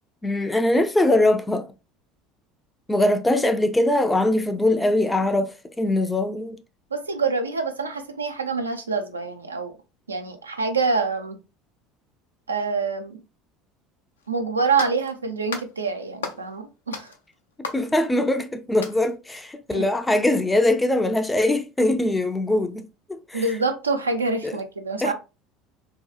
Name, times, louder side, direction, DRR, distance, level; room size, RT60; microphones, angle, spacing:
voice 1, 0.2-1.7 2.9-6.6 17.6-23.4 24.4-24.6 25.0-25.1, left 1 dB, 10° left, 0.3 m, -22 dB
voice 2, 6.9-9.7 10.1-11.4 12.5-13.2 14.3-17.1 19.7-19.8 23.3-25.1, right 4 dB, 90° right, 0.4 m, -26 dB
sound 1, 14.2-14.3 14.8-15.1 15.5-15.7 16.2-16.5 16.9-18.4 18.8-19.1, left 5 dB, 80° left, 0.4 m, -35 dB
2.7 x 2.3 x 2.3 m
hypercardioid pair, 70°, 0 cm